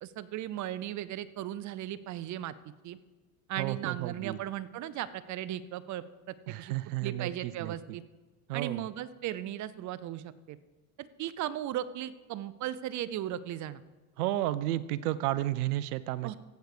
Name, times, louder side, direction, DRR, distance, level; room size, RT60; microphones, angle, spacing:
voice 1, 0.0-2.6 2.8-3.0 3.5-6.7 7.0-8.0 8.5-10.6 11.0-13.8 16.2-16.4, right 12 dB, 40° right, 16 dB, 0.7 m, -37 dB
voice 2, 3.6-4.4 6.5-7.7 8.5-8.9 14.2-16.4, right 15 dB, 80° right, 17 dB, 0.7 m, -32 dB
14.5 x 8.3 x 5.0 m, 1.2 s
supercardioid pair, 100°, 45 cm